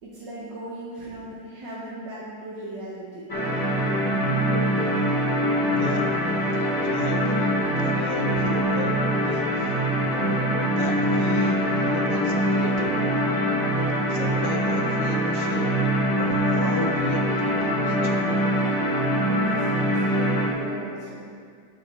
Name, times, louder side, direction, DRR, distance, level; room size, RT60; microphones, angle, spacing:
voice 1, 0.0-3.3 19.3-21.3, right 1 dB, 75° right, -6 dB, 1.8 m, -38 dB
sound 1, 3.3-20.5, equal, 15° left, 0.9 m, -23 dB
voice 2, 5.7-6.2 6.8-9.8 10.1-12.9 14.1-15.8 16.2-18.2, left 3 dB, 55° left, 1 dB, 0.9 m, -34 dB
11.5 x 4.8 x 4.3 m, 2.2 s
omnidirectional pair, 1.9 m